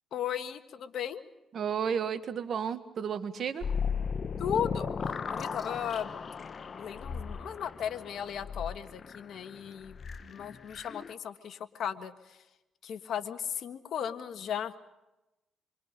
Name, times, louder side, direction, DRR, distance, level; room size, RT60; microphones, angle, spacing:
voice 1, 0.1-1.2 4.4-4.9 5.3-6.1 6.8-12.4 12.8-14.8, left 8 dB, 70° left, 9 dB, 1.6 m, -36 dB
voice 2, 1.5-3.7, right 7 dB, 55° right, 10 dB, 1.7 m, -32 dB
sound 1, 3.6-11.1, left 6 dB, 45° left, 0.9 m, -36 dB
27.5 x 23.5 x 5.3 m, 0.96 s
cardioid pair, 90°, 0 cm